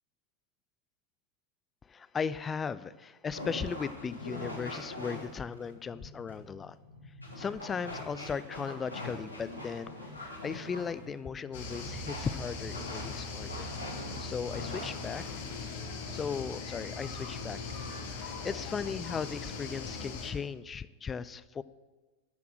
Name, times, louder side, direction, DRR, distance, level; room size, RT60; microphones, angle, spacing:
voice 1, 1.8-6.8 7.4-13.7 14.2-15.3 16.1-17.6 18.2-21.6, left 6 dB, 20° left, 15 dB, 0.4 m, -37 dB
sound 1, 3.3-15.3, left 1 dB, 85° right, 2.3 m, -43 dB
sound 2, 11.5-20.3, left 4 dB, 55° left, 1.7 m, -40 dB
12.0 x 5.9 x 7.7 m, 1.3 s
figure-of-eight pair, 90°, 0 cm